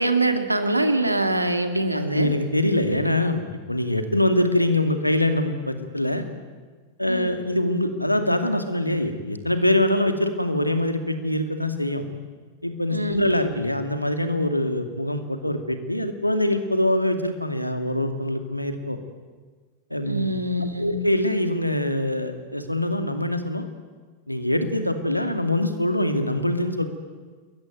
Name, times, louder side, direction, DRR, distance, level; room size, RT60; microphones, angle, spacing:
voice 1, 0.0-2.3 7.1-7.3 12.9-13.2 20.0-20.9, right 2 dB, 85° right, 7 dB, 2.5 m, -24 dB
voice 2, 2.1-6.2 7.0-12.0 12.6-19.0 19.9-20.3 20.8-23.7 24.3-26.8, left 1 dB, 90° left, 8 dB, 2.4 m, -24 dB
28.5 x 22.0 x 9.2 m, 1.4 s
figure-of-eight pair, 90°, 0 cm